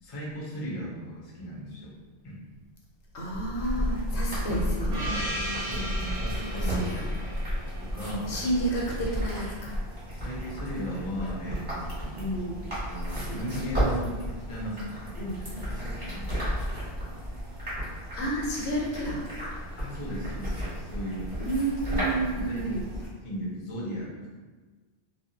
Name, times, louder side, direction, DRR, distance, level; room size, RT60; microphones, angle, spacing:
voice 1, 0.0-1.9 2.2-2.4 5.6-7.2 7.8-8.3 10.1-12.2 12.8-14.2 14.5-16.3 19.8-21.3 21.9-22.1 22.3-22.8 23.2-24.1, equal, 40° left, -5 dB, 0.5 m, -36 dB
voice 2, 3.1-5.3 6.4-7.1 8.3-9.8 12.2-12.7 13.3-13.5 15.2-15.4 18.2-19.3 21.4-22.8, right 1 dB, 75° left, -4 dB, 0.9 m, -31 dB
sound 1, 3.5-23.1, equal, 30° right, 1.0 m, -33 dB
Gong, 4.9-9.2, equal, 65° right, 0.3 m, -37 dB
2.3 x 2.0 x 2.7 m, 1.4 s
omnidirectional pair, 1.2 m